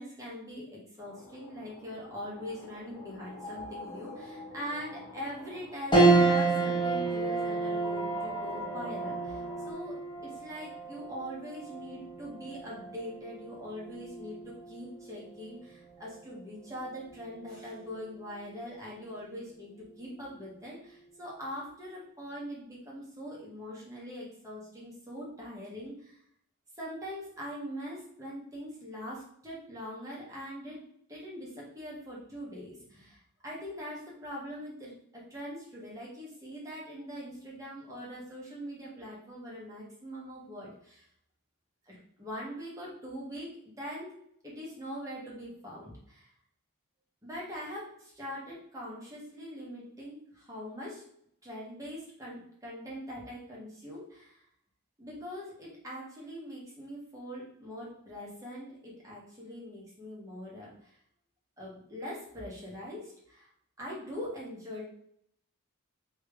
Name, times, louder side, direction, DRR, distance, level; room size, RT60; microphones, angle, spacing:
voice 1, 0.0-26.2 26.8-30.8 31.1-41.0 41.9-43.5 43.8-44.1 44.4-46.3 47.2-51.1 51.4-54.4 55.0-61.0 61.6-63.5 63.8-64.9, equal, 15° right, -5 dB, 1.5 m, -42 dB
sound 1, 1.0-9.7, left 3 dB, 85° left, 1.0 m, -46 dB
sound 2, 5.9-15.5 16.0-16.1 17.4-17.9, right 3 dB, 20° left, 1.2 m, -30 dB
3.3 x 3.2 x 4.8 m, 0.68 s
head